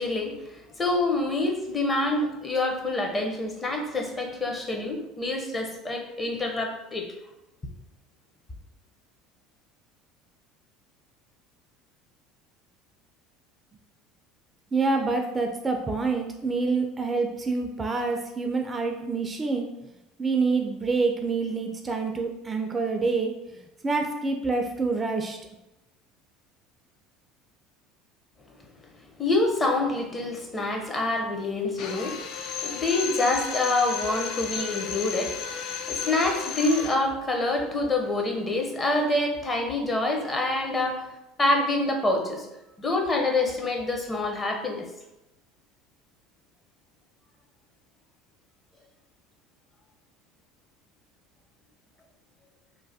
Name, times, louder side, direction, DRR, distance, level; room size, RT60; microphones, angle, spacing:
voice 1, 0.0-7.1 29.2-35.4 35.9-41.0 41.4-42.5 42.8-44.8, left 2 dB, 25° left, 1 dB, 0.7 m, -26 dB
voice 2, 14.7-19.7 20.2-23.3 23.8-25.4, right 4 dB, 25° right, 4 dB, 0.3 m, -27 dB
Drill, 31.8-37.1, left 6 dB, 65° left, 0.3 m, -33 dB
3.1 x 2.1 x 2.7 m, 0.93 s
hypercardioid pair, 75°, 0 cm